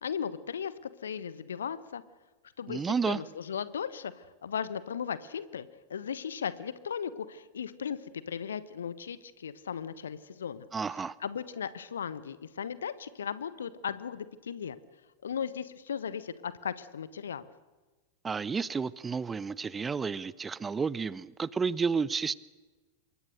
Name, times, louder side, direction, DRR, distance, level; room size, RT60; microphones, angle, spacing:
voice 1, 0.0-2.0 2.6-2.8 3.1-10.7 11.2-14.8 15.2-17.5, left 7 dB, 65° left, 16 dB, 1.2 m, -37 dB
voice 2, 2.7-3.2 10.7-11.2 18.2-22.3, right 5 dB, 15° right, 21 dB, 0.7 m, -31 dB
27.0 x 23.0 x 6.6 m, 1.3 s
figure-of-eight pair, 90°, 0 cm